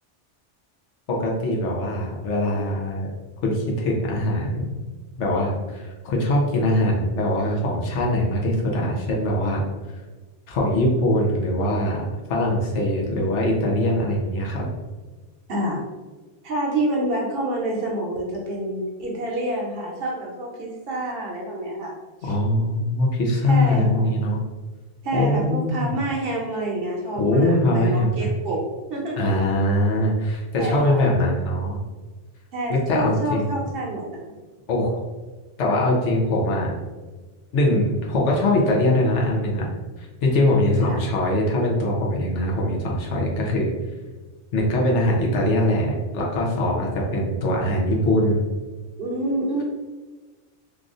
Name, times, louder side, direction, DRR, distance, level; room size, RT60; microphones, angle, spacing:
voice 1, 1.1-3.1 3.4-4.7 5.2-9.6 10.5-12.0 12.3-14.6 22.2-24.4 25.1-26.0 27.2-28.3 29.2-31.8 32.7-33.6 34.7-34.9 35.6-36.7 37.5-39.7 40.0-43.7 44.5-48.4, left 1 dB, 80° left, -1 dB, 1.0 m, -22 dB
voice 2, 15.5-15.8 16.4-21.9 22.2-22.3 23.5-24.1 25.0-28.6 28.9-29.3 30.6-31.0 32.5-34.3 40.8-41.0 49.0-49.6, right 1 dB, 55° right, -2 dB, 0.9 m, -28 dB
3.3 x 2.5 x 2.4 m, 1.3 s
omnidirectional pair, 1.2 m